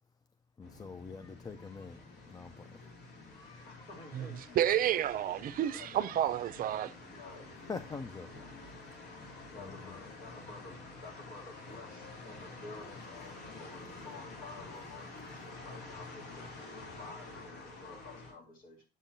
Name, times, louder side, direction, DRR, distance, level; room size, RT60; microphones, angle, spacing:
sound 1, 0.6-18.3, left 3 dB, 80° left, 3.1 m, -49 dB
voice 1, 0.6-2.8 3.3-4.1 5.7-5.8 6.8-6.9 7.7-8.7 9.5-10.1 13.8-13.9, left 5 dB, 20° left, 0.4 m, -46 dB
voice 2, 3.6-4.6 5.7-6.0 7.0-7.5 9.5-16.7 17.0-18.8, left 3 dB, 55° left, 3.1 m, -51 dB
voice 3, 4.5-6.9, right 11 dB, 55° right, 0.5 m, -30 dB
7.4 x 7.2 x 2.6 m
cardioid pair, 110°, 17 cm